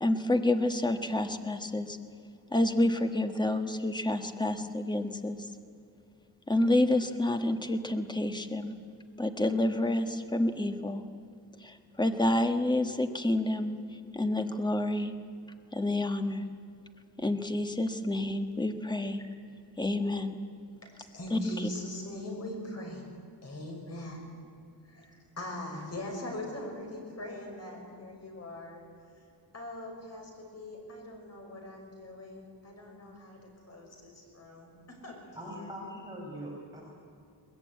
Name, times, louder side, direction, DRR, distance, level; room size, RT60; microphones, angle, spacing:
voice 1, 0.0-2.0 2.5-5.4 6.5-8.7 9.2-11.0 11.6-13.7 14.1-15.1 15.7-16.4 17.2-19.2 19.8-20.4 21.3-21.7, left 1 dB, 10° left, 7 dB, 1.3 m, -29 dB
voice 2, 20.8-23.1 23.4-24.3 24.8-28.9 29.5-33.4 33.7-35.7, left 1 dB, 35° left, 1 dB, 6.0 m, -41 dB
voice 3, 35.3-36.8, equal, 10° right, -4 dB, 5.1 m, -41 dB
22.0 x 20.5 x 9.5 m, 2.4 s
wide cardioid pair, 155°, 42 cm